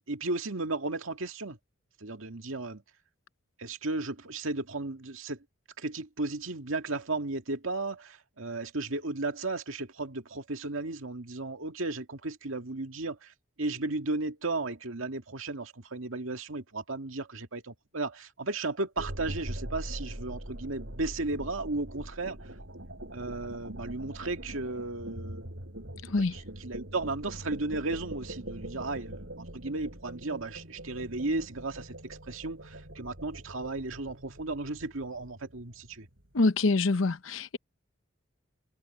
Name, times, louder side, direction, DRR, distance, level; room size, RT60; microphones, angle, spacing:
voice 1, 0.0-1.6 2.0-2.8 3.6-5.4 5.8-22.4 23.1-25.5 26.3-36.1, right 2 dB, 85° right, 2.1 m, -35 dB
sound 1, 19.0-36.2, right 1 dB, 65° right, 5.5 m, -43 dB
voice 2, 36.3-37.6, left 3 dB, 80° left, 0.8 m, -25 dB
head